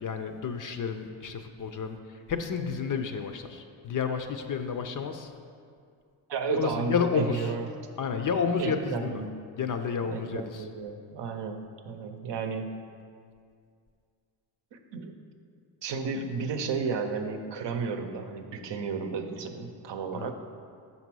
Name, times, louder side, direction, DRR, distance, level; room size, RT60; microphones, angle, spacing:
voice 1, 0.0-2.0 2.3-5.3 6.5-7.5 8.0-9.2 9.6-10.6 20.1-20.3, left 6 dB, 45° left, 7 dB, 0.5 m, -30 dB
voice 2, 6.3-7.7 8.6-9.3 10.0-12.8 14.7-15.1 15.8-20.3, right 5 dB, 60° right, 6 dB, 0.7 m, -33 dB
5.9 x 4.0 x 6.1 m, 2.2 s
cardioid pair, 85°, 48 cm